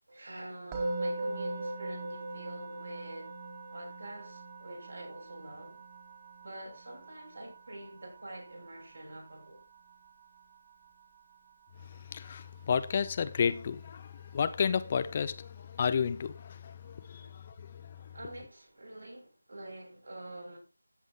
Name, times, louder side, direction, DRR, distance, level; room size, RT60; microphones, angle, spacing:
voice 1, 0.1-3.3 3.7-5.8 6.4-9.6 17.2-17.4 18.1-20.6, right 1 dB, 60° right, 7.2 m, -46 dB
Musical instrument, 0.7-11.8, right 2 dB, 15° right, 2.4 m, -41 dB
voice 2, 12.1-17.2, left 6 dB, 25° left, 0.6 m, -31 dB
14.0 x 8.2 x 3.0 m
figure-of-eight pair, 165°, 0 cm